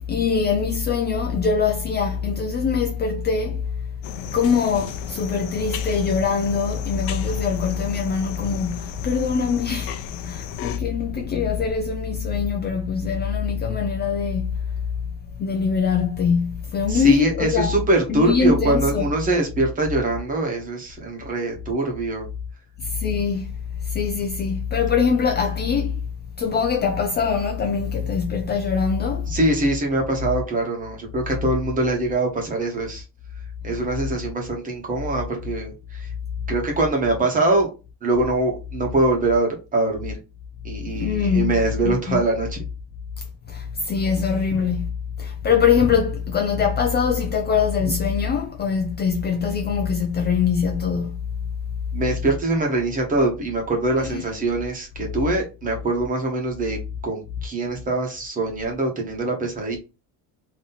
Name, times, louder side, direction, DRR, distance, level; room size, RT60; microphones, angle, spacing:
voice 1, 0.1-3.8 4.3-10.0 10.2-14.5 15.4-17.8 18.1-19.1 22.8-23.5 23.8-26.0 26.4-29.3 40.9-42.2 43.5-44.9 45.2-51.2 54.0-54.2, left 6 dB, 25° left, 0.5 m, -23 dB
sound 1, 4.0-10.8, left 10 dB, 80° left, 0.8 m, -36 dB
voice 2, 16.9-22.2 29.3-33.0 33.6-36.1 36.5-37.7 38.0-40.2 40.6-42.6 51.9-59.8, right 2 dB, 20° right, 1.1 m, -23 dB
4.1 x 3.0 x 4.0 m
cardioid pair, 170°, 41 cm